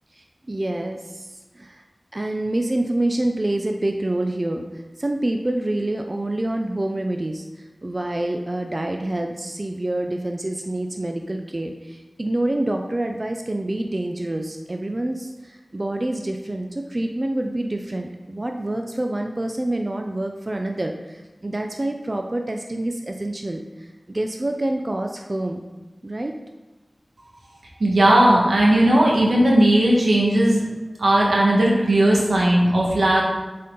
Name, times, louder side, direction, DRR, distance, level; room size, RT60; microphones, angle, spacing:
voice 1, 0.1-1.8 2.1-25.6 26.0-26.4, right 1 dB, 40° right, 4 dB, 0.5 m, -27 dB
voice 2, 27.8-30.6 31.0-33.2, right 1 dB, 90° right, -3 dB, 1.4 m, -17 dB
7.3 x 4.3 x 3.8 m, 1.1 s
wide cardioid pair, 50°, 0 cm